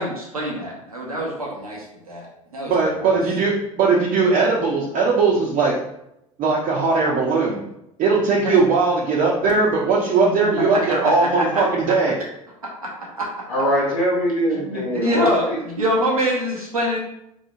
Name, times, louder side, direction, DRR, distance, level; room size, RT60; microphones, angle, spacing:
voice 1, 0.0-2.3 2.5-2.7 3.0-3.1 8.4-8.5 10.4-12.0 12.6-13.5 14.5-15.4 15.8-17.0, equal, 90° right, -2 dB, 0.7 m, -25 dB
voice 2, 2.7-5.7 6.4-7.6 8.0-12.2, right 4 dB, 50° right, -4 dB, 0.7 m, -19 dB
voice 3, 13.5-15.6, equal, 85° left, -9 dB, 1.0 m, -22 dB
4.0 x 3.0 x 2.5 m, 0.82 s
figure-of-eight pair, 65°, 18 cm